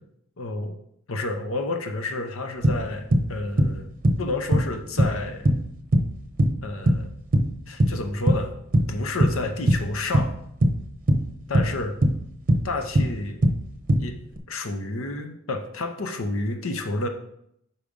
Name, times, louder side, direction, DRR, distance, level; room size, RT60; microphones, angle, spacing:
voice 1, 0.4-0.8 1.1-3.9 4.2-5.5 6.6-7.1 7.7-8.5 8.9-10.4 11.5-11.9 12.6-13.4 14.0-14.2 14.5-17.1, left 2 dB, 75° left, 6 dB, 0.7 m, -30 dB
sound 1, 2.6-3.3 3.6-3.8 4.0-4.7 5.0-6.1 6.4-7.1 7.3-8.0 8.3-8.5 8.7-9.4 9.7-10.8 11.1-12.2 12.5-13.6 13.9-14.4, right 1 dB, 40° right, 0.8 m, -20 dB
5.7 x 4.9 x 5.2 m, 0.73 s
head